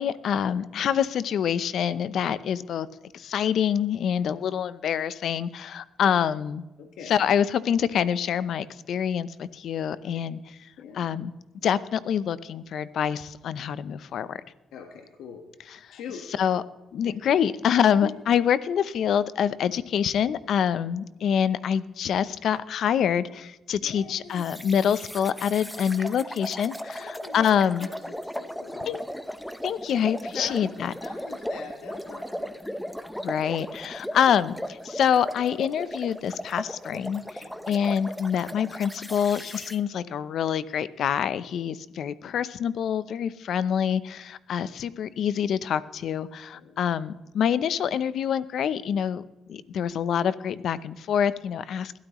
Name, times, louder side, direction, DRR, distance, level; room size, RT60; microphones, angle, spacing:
voice 1, 0.0-2.9 3.1-6.6 7.1-10.4 10.9-11.3 11.6-14.4 16.4-16.6 16.9-27.9 28.9-29.0 29.6-30.9 33.2-49.2 49.5-52.0, left 8 dB, 65° left, 16 dB, 0.6 m, -26 dB
voice 2, 6.8-7.2 10.1-10.2 10.8-11.1 14.7-15.4 15.9-16.2 18.0-18.1 21.2-21.3 23.8-24.5 27.0-27.5 27.8-29.0 30.3-30.6 31.0-32.6 37.4-37.7 46.5-46.8, left 6 dB, 85° left, 3 dB, 1.5 m, -42 dB
sound 1, 24.4-39.8, equal, 5° left, 0.9 m, -37 dB
21.0 x 12.5 x 3.1 m, 1.0 s
cardioid pair, 90°, 0 cm